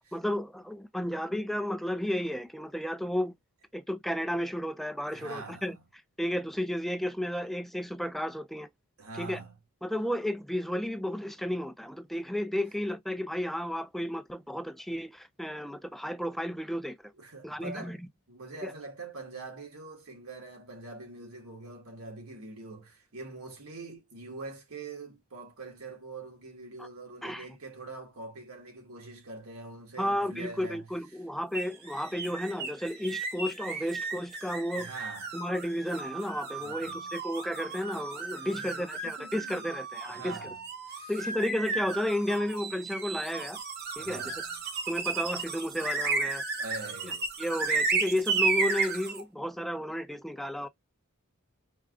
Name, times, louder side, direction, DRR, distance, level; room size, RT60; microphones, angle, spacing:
voice 1, 0.1-3.3 3.7-5.8 6.2-8.7 9.2-9.4 9.8-17.0 17.4-18.1 18.6-18.7 26.8-26.9 27.2-27.5 30.0-34.9 35.3-40.4 41.1-43.6 44.0-44.3 44.9-46.4 47.0-47.1 47.4-50.7, equal, ahead, 0.3 m, -33 dB
voice 2, 5.1-5.7 9.0-9.5 17.2-18.0 18.3-30.9 34.7-35.3 36.6-37.1 38.3-39.8 40.1-41.1 44.0-44.6 46.6-47.3, right 3 dB, 85° right, 1.5 m, -44 dB
sound 1, 31.5-49.2, right 4 dB, 50° right, 0.8 m, -34 dB
4.6 x 2.3 x 2.4 m
head